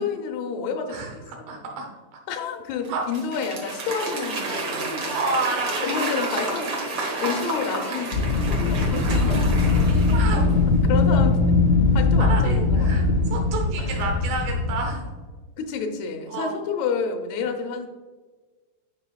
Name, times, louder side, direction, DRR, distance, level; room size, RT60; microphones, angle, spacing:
voice 1, 0.0-1.7 2.3-5.2 5.8-6.7 7.0-10.0 10.3-11.4 11.9-13.0 13.8-14.2 15.6-17.9, left 5 dB, 85° left, 4 dB, 1.6 m, -30 dB
voice 2, 1.5-1.9 2.9-3.0 5.1-6.3 6.6-6.7 9.0-9.4 10.1-10.4 12.2-13.1 13.3-15.0 16.3-16.6, right 3 dB, 75° right, 1 dB, 2.5 m, -30 dB
Applause / Crowd, 2.8-10.6, right 2 dB, 55° right, 1.3 m, -30 dB
Wind, 8.1-15.1, left 3 dB, 50° left, 0.9 m, -20 dB
9.9 x 5.1 x 2.3 m, 1.3 s
omnidirectional pair, 4.0 m